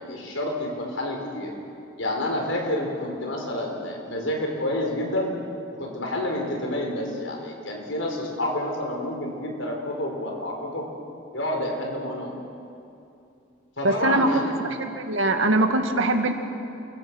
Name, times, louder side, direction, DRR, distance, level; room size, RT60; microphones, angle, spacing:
voice 1, 0.0-1.5 2.0-5.3 5.7-10.9 11.3-12.4 13.8-14.5, left 1 dB, 80° left, 1 dB, 5.1 m, -29 dB
voice 2, 13.8-14.4 14.8-16.3, right 2 dB, 85° right, 5 dB, 2.2 m, -22 dB
28.5 x 23.5 x 6.4 m, 2.6 s
head